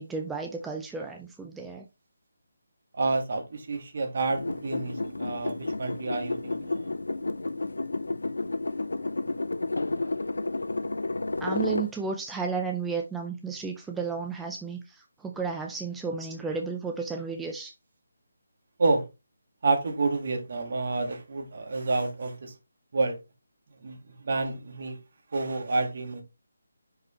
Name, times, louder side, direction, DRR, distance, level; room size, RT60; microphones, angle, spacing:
voice 1, 0.0-1.9 11.4-17.7, right 5 dB, 5° right, 0.5 m, -33 dB
voice 2, 3.0-6.9 18.8-19.1 19.6-22.5 22.9-23.2 23.8-25.0 25.3-26.2, right 3 dB, 55° right, 1.6 m, -29 dB
sound 1, 4.3-11.9, left 2 dB, 90° left, 0.5 m, -31 dB
5.9 x 5.1 x 3.0 m
figure-of-eight pair, 165°, 0 cm